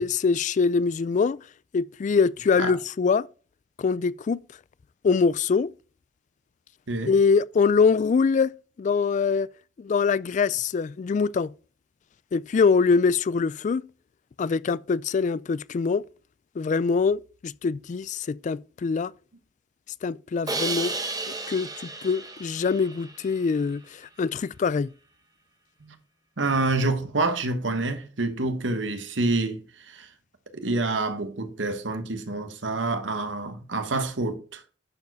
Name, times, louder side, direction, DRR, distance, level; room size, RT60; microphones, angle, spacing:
voice 1, 0.0-1.4 1.7-3.3 3.8-4.4 5.0-5.7 7.1-8.5 8.8-9.5 9.8-11.5 12.3-13.8 14.4-16.0 16.6-19.1 20.0-21.0 21.5-21.7 22.0-24.9, left 5 dB, 40° left, 0.3 m, -23 dB
Crash cymbal, 20.5-23.5, right 3 dB, 20° right, 1.1 m, -33 dB
voice 2, 26.4-29.6 29.9-30.1 30.5-34.6, right 2 dB, 80° right, 1.3 m, -27 dB
10.5 x 4.7 x 4.7 m
head